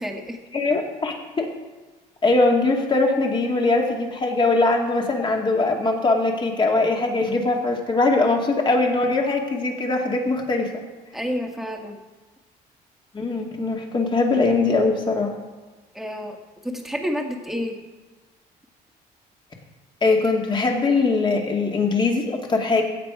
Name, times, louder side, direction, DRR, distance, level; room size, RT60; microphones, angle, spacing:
voice 1, 0.0-0.4 11.1-12.0 15.9-16.4 16.6-17.8, equal, ahead, 2 dB, 1.8 m, -29 dB
voice 2, 0.5-1.5 2.2-10.7 13.1-15.3 20.0-22.8, left 3 dB, 30° left, 1 dB, 2.3 m, -21 dB
16.5 x 7.4 x 5.0 m, 1.2 s
cardioid pair, 110°, 17 cm